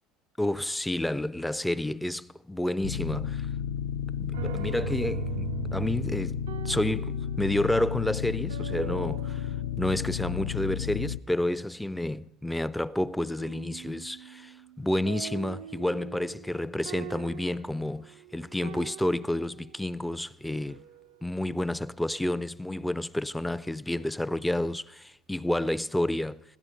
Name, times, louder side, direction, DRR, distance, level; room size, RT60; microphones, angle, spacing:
voice 1, 0.4-3.5 4.2-20.8 21.2-26.4, left 1 dB, 5° left, 0.4 m, -30 dB
sound 1, 2.8-11.2, left 9 dB, 75° left, 0.4 m, -32 dB
sound 2, 4.3-10.8 13.4-19.8 20.7-21.3, right 11 dB, 80° right, 0.5 m, -41 dB
16.0 x 13.0 x 5.1 m
hypercardioid pair, 70°, 0 cm